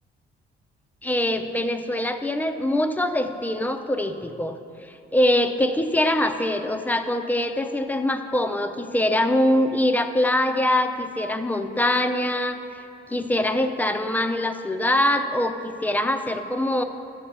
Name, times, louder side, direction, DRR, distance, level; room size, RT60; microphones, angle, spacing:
voice 1, 1.0-12.8 13.1-16.8, left 1 dB, 10° left, 7 dB, 0.5 m, -23 dB
13.0 x 7.1 x 3.3 m, 2.7 s
cardioid pair, 90°, 20 cm